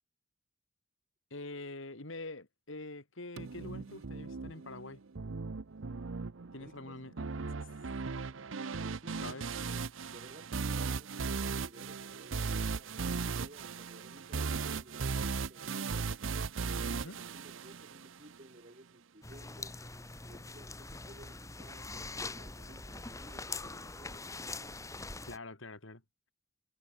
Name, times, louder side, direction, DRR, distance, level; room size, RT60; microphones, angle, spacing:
voice 1, 1.3-5.0 6.5-7.3 9.2-9.4 16.9-17.2 25.2-26.0, left 2 dB, 85° left, 2.9 m, -45 dB
sound 1, 3.4-18.4, right 4 dB, 80° right, 0.7 m, -37 dB
voice 2, 6.6-7.0 8.8-16.1 16.6-19.8 20.2-24.3 24.6-24.9, right 1 dB, 40° right, 3.3 m, -56 dB
sound 2, 19.2-25.4, left 3 dB, 15° left, 1.8 m, -43 dB
head